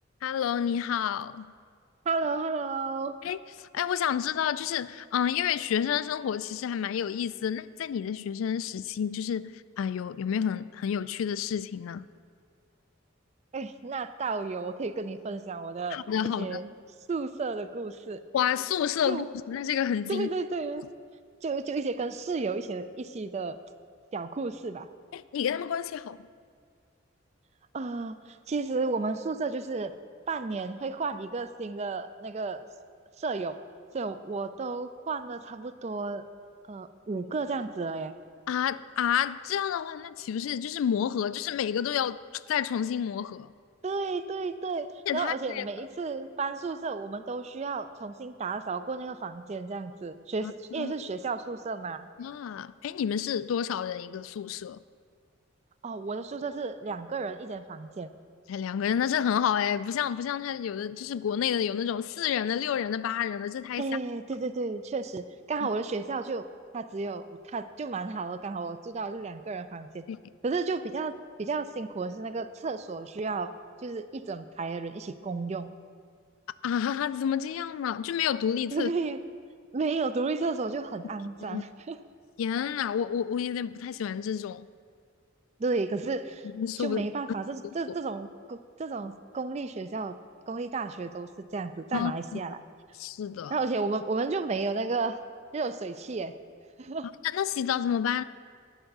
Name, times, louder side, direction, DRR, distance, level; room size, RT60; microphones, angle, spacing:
voice 1, 0.2-1.5 3.2-12.1 15.9-16.6 18.3-20.3 25.1-26.2 38.5-43.5 45.1-45.6 50.4-50.9 52.2-54.8 58.5-63.8 70.1-70.2 76.6-78.9 81.4-81.6 82.4-84.7 86.5-87.0 91.9-92.4 93.0-93.6 97.3-98.2, left 8 dB, 90° left, 0.3 m, -30 dB
voice 2, 2.1-3.1 13.5-16.7 17.1-18.2 19.1-19.3 20.1-20.8 21.4-23.6 24.1-24.9 27.7-29.9 30.3-32.7 33.2-33.6 33.9-36.2 36.7-38.1 43.8-44.9 45.1-52.1 55.8-58.1 63.8-66.5 66.7-70.0 70.4-71.1 71.4-73.5 73.8-75.7 78.7-79.2 79.7-82.0 85.6-86.5 86.8-90.2 90.5-92.6 93.5-95.2 95.5-96.3 96.8-97.1, right 4 dB, 35° right, 0.3 m, -32 dB
10.0 x 5.7 x 6.6 m
head